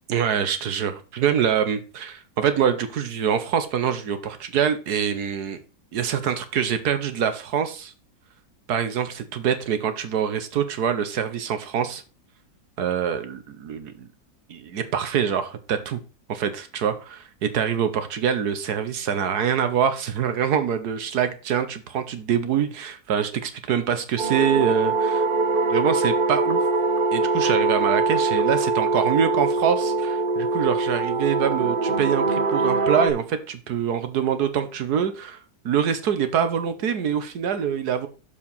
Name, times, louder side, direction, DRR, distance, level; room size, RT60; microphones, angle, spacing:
voice 1, 0.1-5.6 5.9-7.9 8.7-12.0 12.8-14.1 14.5-16.0 16.3-25.2 25.7-26.6 27.1-35.4 35.6-38.1, right 8 dB, 75° right, 10 dB, 1.6 m, -25 dB
sound 1, 24.2-33.1, right 3 dB, 40° right, 0.9 m, -23 dB
7.0 x 4.8 x 5.5 m, 0.34 s
omnidirectional pair, 1.7 m